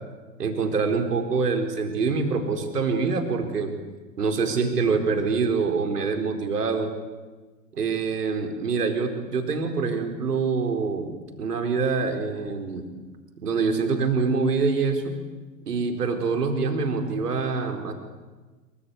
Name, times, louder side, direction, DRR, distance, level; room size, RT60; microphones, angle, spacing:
voice 1, 0.4-3.7 4.2-6.9 7.8-12.9 13.4-15.1 15.7-17.9, right 4 dB, 70° right, 5 dB, 4.5 m, -25 dB
26.5 x 24.0 x 8.2 m, 1.3 s
figure-of-eight pair, 105°, 49 cm